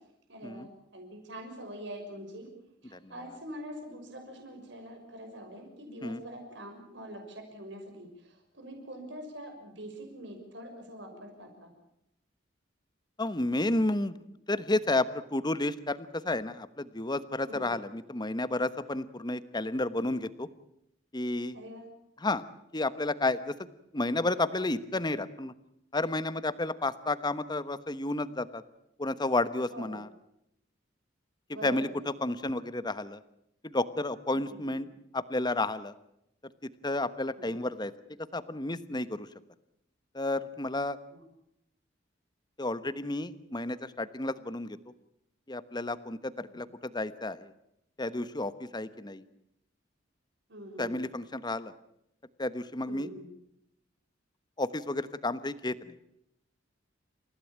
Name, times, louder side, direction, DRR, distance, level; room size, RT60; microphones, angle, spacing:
voice 1, 0.3-2.5 2.8-11.7 17.4-17.7 21.5-21.9 29.7-30.0 31.5-31.9 34.3-34.7 37.4-37.5 41.1-41.2 46.5-46.6 50.5-50.9 52.9-53.3, equal, 70° right, 3 dB, 6.2 m, -44 dB
voice 2, 13.2-14.2 14.5-20.5 21.1-21.6 22.2-22.4 22.7-23.7 23.9-25.5 25.9-28.6 29.0-30.1 31.6-31.9 32.2-33.2 33.6-35.9 36.8-37.9 38.3-39.3 40.1-41.0 42.6-44.8 45.5-47.5 48.0-49.2 50.8-51.7 52.4-53.1 54.6-55.9, left 2 dB, 25° left, 14 dB, 1.2 m, -31 dB
29.0 x 16.0 x 8.8 m, 0.78 s
head